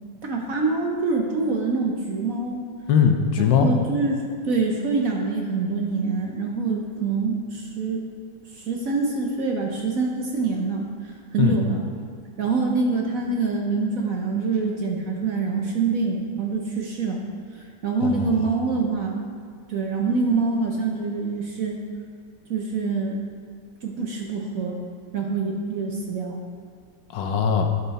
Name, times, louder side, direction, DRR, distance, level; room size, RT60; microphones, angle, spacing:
voice 1, 0.2-2.6 3.4-8.0 8.6-11.8 12.4-17.2 17.5-19.2 19.7-21.8 22.5-23.2 23.8-24.8 25.1-26.4, right 4 dB, 55° right, 0 dB, 1.1 m, -25 dB
voice 2, 2.9-3.7 11.4-11.6 18.0-18.5 27.1-27.7, left 7 dB, 75° left, 4 dB, 1.5 m, -20 dB
12.5 x 5.7 x 4.1 m, 2.1 s
omnidirectional pair, 2.1 m